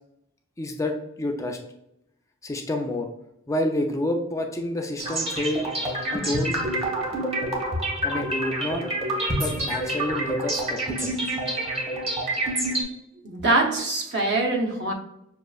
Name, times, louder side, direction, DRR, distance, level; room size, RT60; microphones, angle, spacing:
voice 1, 0.6-1.6 2.4-3.1 3.5-5.7 6.1-6.6 8.0-8.9 9.4-11.1, left 1 dB, 15° left, 3 dB, 0.3 m, -28 dB
sound 1, 5.0-12.8, right 1 dB, 30° right, 0.9 m, -27 dB
voice 2, 13.2-14.9, right 2 dB, 60° right, 2 dB, 0.7 m, -23 dB
6.0 x 2.4 x 2.3 m, 0.81 s
head